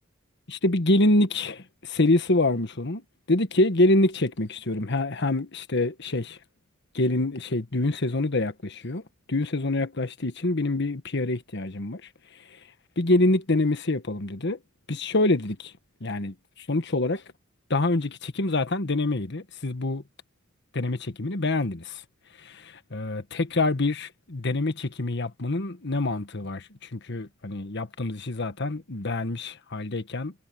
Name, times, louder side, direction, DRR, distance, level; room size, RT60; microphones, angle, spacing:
voice 1, 0.5-3.0 3.3-6.4 6.9-9.0 9.3-12.0 12.5-12.6 13.0-14.6 14.9-15.7 16.0-17.2 17.7-20.0 20.7-22.0 22.4-30.3, left 2 dB, 60° left, 1.4 m, -26 dB
head